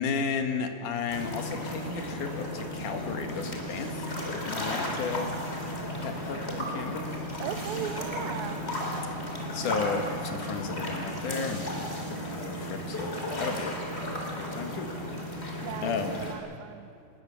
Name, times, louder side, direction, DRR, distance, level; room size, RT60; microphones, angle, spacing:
voice 1, 0.0-4.1 4.4-5.3 6.0-7.1 9.5-13.1 13.4-13.8 14.4-14.9 15.8-16.2, left 5 dB, 80° left, 5 dB, 3.1 m, -33 dB
sound 1, 1.1-16.3, equal, 20° left, 3.5 m, -34 dB
voice 2, 7.4-8.7 15.6-16.9, right 10 dB, 75° right, 13 dB, 2.0 m, -37 dB
25.5 x 20.5 x 7.1 m, 2.7 s
omnidirectional pair, 3.6 m